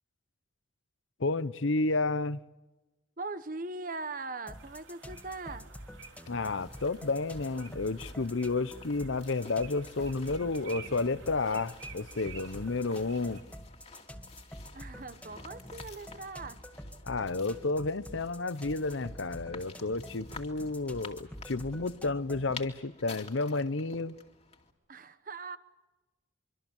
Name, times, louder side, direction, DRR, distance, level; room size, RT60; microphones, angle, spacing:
voice 1, 1.2-2.4 6.3-13.4 17.0-24.1, left 3 dB, 75° left, 0.8 m, -31 dB
voice 2, 3.2-5.7 14.7-16.6 24.9-25.6, right 3 dB, 40° right, 1.1 m, -40 dB
sound 1, 4.5-22.6, equal, 5° left, 1.8 m, -47 dB
sound 2, 4.5-13.4, right 5 dB, 75° right, 3.1 m, -52 dB
sound 3, 6.1-24.7, left 4 dB, 30° left, 2.5 m, -52 dB
25.0 x 25.0 x 7.2 m
head